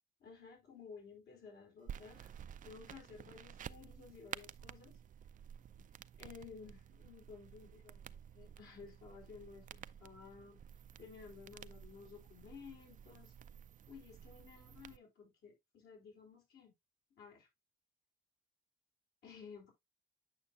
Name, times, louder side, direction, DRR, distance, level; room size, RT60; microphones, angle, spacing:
voice 1, 0.2-2.3 2.6-5.0 6.2-10.6 11.0-13.3 13.9-16.7 17.2-17.5 19.2-19.7, left 5 dB, 75° left, 4.1 m, -55 dB
sound 1, 1.9-15.0, right 9 dB, 50° right, 0.4 m, -52 dB
8.7 x 6.3 x 2.4 m
cardioid pair, 80°, 17 cm